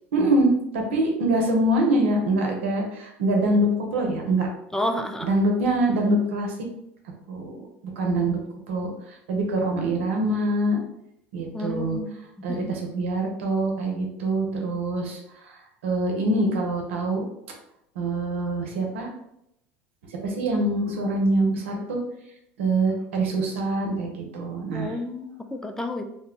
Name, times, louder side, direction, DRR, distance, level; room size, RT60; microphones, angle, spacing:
voice 1, 0.1-4.5 5.2-6.5 7.3-7.5 8.0-8.4 8.7-8.9 9.3-10.8 11.3-12.0 12.4-15.2 15.8-17.2 18.0-19.1 20.2-22.0 22.6-24.9, right 1 dB, 80° right, 1 dB, 0.8 m, -24 dB
voice 2, 4.7-5.3 11.5-12.2 12.5-12.9 24.7-26.0, left 1 dB, 5° left, 5 dB, 0.4 m, -30 dB
2.7 x 2.2 x 3.7 m, 0.79 s
hypercardioid pair, 85°, 7 cm